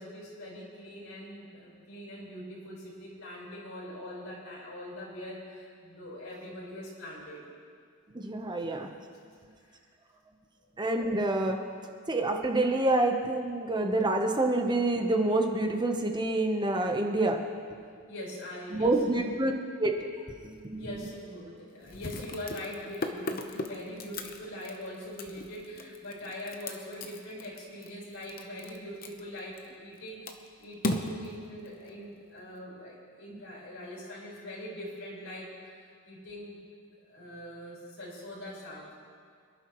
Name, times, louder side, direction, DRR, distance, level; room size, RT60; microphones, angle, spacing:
voice 1, 0.0-7.4 9.6-9.8 18.1-19.2 20.7-36.6 37.1-38.9, left 1 dB, 85° left, -5 dB, 4.5 m, -42 dB
voice 2, 8.1-8.9 10.8-11.6 12.1-17.4 18.7-19.5 19.8-20.0 20.4-20.8, right 2 dB, 20° right, 3 dB, 0.9 m, -27 dB
sound 1, 20.4-20.6 20.9-21.0 21.8-30.0 30.2-32.4, left 2 dB, 45° left, 0.9 m, -37 dB
26.5 x 11.0 x 3.1 m, 2.1 s
head